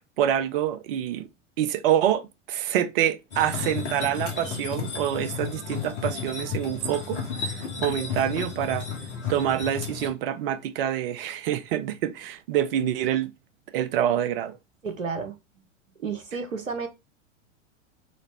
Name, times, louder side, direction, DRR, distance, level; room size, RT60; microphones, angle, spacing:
voice 1, 0.2-1.3 1.6-8.9 9.3-13.3 13.7-14.6, right 10 dB, 45° right, 0.6 m, -26 dB
sound 1, 3.3-10.1, left 6 dB, 65° left, 1.6 m, -33 dB
voice 2, 14.8-15.4 16.0-16.9, right 5 dB, 85° right, 0.9 m, -31 dB
4.0 x 3.2 x 3.3 m
figure-of-eight pair, 90°, 38 cm